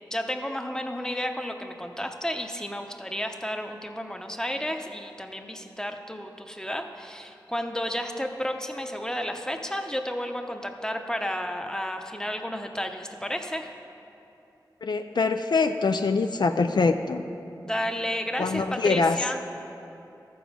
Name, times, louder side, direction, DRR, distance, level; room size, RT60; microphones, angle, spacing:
voice 1, 0.1-13.7 17.5-19.5, equal, 10° left, 5 dB, 0.7 m, -32 dB
voice 2, 14.8-17.3 18.4-19.2, left 4 dB, 75° left, 7 dB, 0.4 m, -24 dB
13.5 x 7.1 x 5.0 m, 2.9 s
wide cardioid pair, 70°, 7 cm